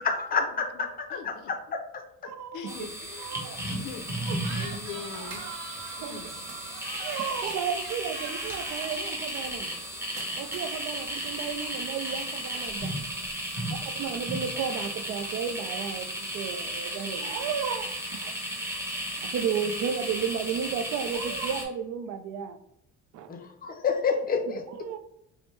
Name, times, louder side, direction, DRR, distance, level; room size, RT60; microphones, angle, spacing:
voice 1, 0.0-1.8 23.3-24.6, left 5 dB, 30° left, 5 dB, 0.5 m, -29 dB
voice 2, 0.5-0.8 1.1-1.5 2.5-3.4 3.7-4.1 4.6-5.4 6.0-6.4, left 6 dB, 80° left, 8 dB, 0.6 m, -42 dB
voice 3, 2.2-2.9 3.2-3.6 4.3-4.4 6.0-6.2 7.0-9.7 10.4-12.9 14.0-18.3 19.2-22.6 23.1-23.3 24.7-25.0, right 7 dB, 60° right, 10 dB, 0.5 m, -33 dB
sound 1, 2.7-21.6, right 1 dB, 10° right, 0.8 m, -34 dB
sound 2, 3.6-12.8, right 3 dB, 45° right, 0.8 m, -45 dB
4.6 x 2.1 x 3.1 m, 0.78 s
cardioid pair, 145°, 30 cm